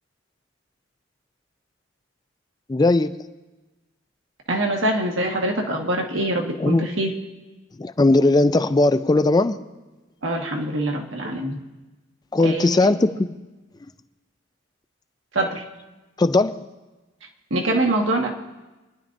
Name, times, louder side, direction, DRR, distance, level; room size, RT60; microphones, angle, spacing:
voice 1, 2.7-3.1 6.6-6.9 7.8-9.5 12.3-13.1 16.2-16.6, left 2 dB, 20° left, 11 dB, 0.4 m, -18 dB
voice 2, 4.5-7.1 10.2-11.6 12.4-13.1 15.3-15.6 17.5-18.3, right 1 dB, 75° right, 1 dB, 1.5 m, -24 dB
27.5 x 10.5 x 2.6 m, 1.2 s
head